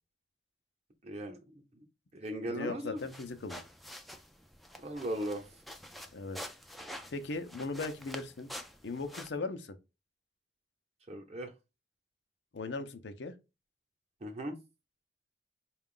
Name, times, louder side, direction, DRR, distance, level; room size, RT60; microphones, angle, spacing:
voice 1, 1.0-1.8 2.1-3.0 4.8-5.5 11.1-11.5 14.2-14.6, right 1 dB, 40° right, 0.8 m, -38 dB
voice 2, 2.5-3.6 6.1-6.4 7.1-8.5 8.8-9.8 12.5-13.3, left 3 dB, 80° left, 0.6 m, -38 dB
sound 1, 3.0-9.3, equal, ahead, 0.3 m, -47 dB
4.6 x 2.4 x 3.7 m
head